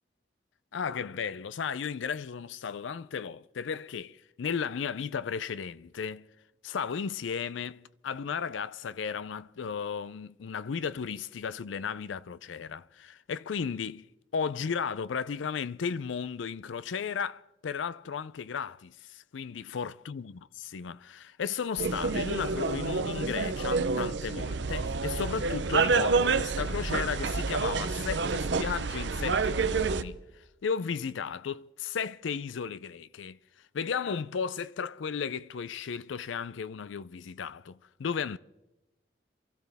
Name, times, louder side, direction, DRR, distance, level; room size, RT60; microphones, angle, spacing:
voice 1, 0.7-6.3 6.6-14.1 14.3-33.4 33.7-38.4, left 6 dB, 80° left, 0.4 m, -35 dB
sound 1, 21.8-30.0, right 4 dB, 70° right, 0.7 m, -28 dB
28.0 x 14.5 x 3.5 m
head